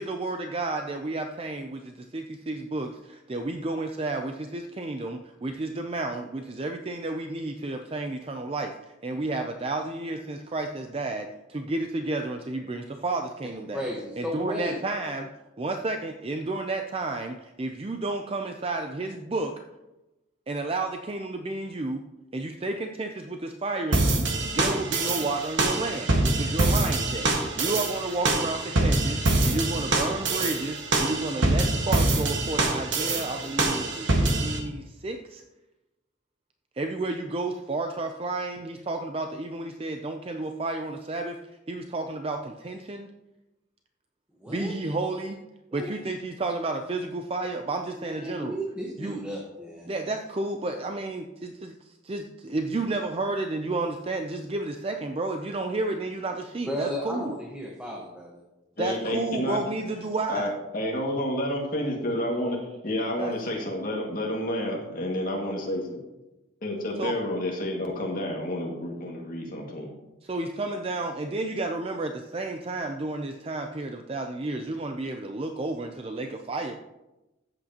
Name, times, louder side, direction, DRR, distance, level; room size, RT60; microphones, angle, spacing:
voice 1, 0.0-8.8 9.0-13.9 14.2-15.3 15.6-19.5 20.5-22.0 22.3-27.3 27.6-35.4 36.8-41.4 41.7-43.1 44.5-45.4 45.7-48.6 49.0-49.2 49.9-57.3 58.8-60.5 63.2-63.3 67.0-67.2 70.2-76.8, right 2 dB, 30° right, 4 dB, 0.5 m, -31 dB
voice 2, 13.7-14.8 44.4-44.7 45.7-45.9 48.0-49.9 56.6-58.4, equal, 5° right, -2 dB, 1.2 m, -34 dB
sound 1, 23.9-34.6, right 2 dB, 70° right, 1.4 m, -25 dB
voice 3, 58.8-59.6 60.3-62.6 62.8-66.0 66.6-69.9, left 1 dB, 45° left, -1 dB, 2.0 m, -30 dB
14.0 x 7.9 x 2.9 m, 1.0 s
head